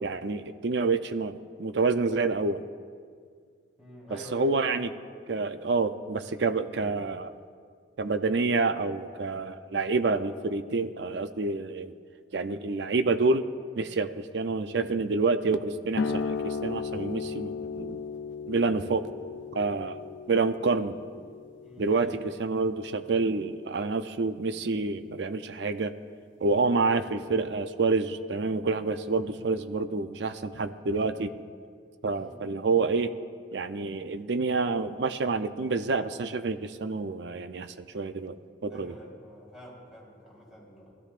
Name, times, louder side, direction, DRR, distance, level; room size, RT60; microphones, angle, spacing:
voice 1, 0.0-2.6 4.3-4.9 5.3-7.3 8.0-11.9 12.3-13.4 13.8-18.0 18.5-19.1 19.5-20.0 20.3-21.0 21.8-25.9 26.4-31.3 32.0-33.1 33.5-38.4 38.6-39.0, right 3 dB, 70° right, 10 dB, 0.5 m, -28 dB
voice 2, 3.8-4.7 21.6-22.2 32.1-32.4 38.7-40.9, equal, 5° right, -6 dB, 3.6 m, -46 dB
sound 1, 16.0-23.1, left 5 dB, 85° left, 0.4 m, -36 dB
18.5 x 13.5 x 2.5 m, 2.1 s
head